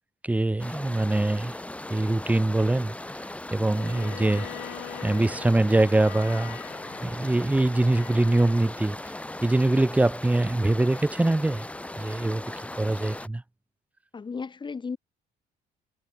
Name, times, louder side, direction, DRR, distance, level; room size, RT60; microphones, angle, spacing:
voice 1, 0.2-1.5 1.9-2.9 3.5-4.5 5.0-6.6 7.0-9.0 9.4-11.7 12.0-12.4 12.8-13.4, right 2 dB, 10° right, 1.0 m, -23 dB
sound 1, 0.6-13.3, left 1 dB, 10° left, 3.1 m, -38 dB
Bowed string instrument, 3.7-8.6, left 17 dB, 80° left, 1.2 m, -44 dB
voice 2, 14.1-15.0, left 5 dB, 25° left, 3.2 m, -34 dB
cardioid pair, 110°, 17 cm